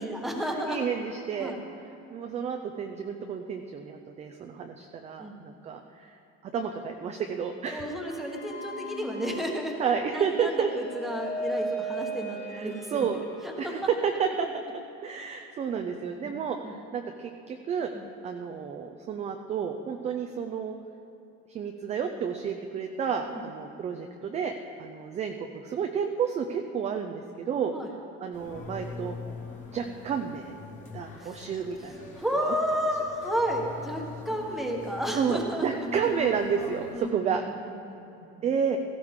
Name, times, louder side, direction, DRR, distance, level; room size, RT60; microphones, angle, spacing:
voice 1, 0.0-0.8 1.4-1.6 5.2-5.4 7.7-9.7 10.1-13.1 13.4-13.7 16.2-16.3 16.6-16.7 17.9-18.1 23.3-23.4 27.7-27.9 31.2-31.5 32.1-35.7 36.0-36.1 36.9-37.3 37.6-38.4, equal, ahead, 0 dB, 1.2 m, -32 dB
voice 2, 0.7-1.5 2.1-6.2 6.4-8.0 9.8-10.7 12.5-13.2 13.6-14.6 15.0-17.9 18.2-20.8 21.5-24.5 24.8-27.7 28.2-29.1 29.5-30.5 30.9-32.1 32.4-32.5 35.1-37.4 38.4-38.8, right 7 dB, 25° right, 5 dB, 0.4 m, -31 dB
sound 1, 8.0-13.9, right 1 dB, 70° left, 3.5 m, -37 dB
sound 2, 28.3-37.0, left 3 dB, 25° left, 1.9 m, -42 dB
16.5 x 15.0 x 3.7 m, 2.8 s
cardioid pair, 170°, 30 cm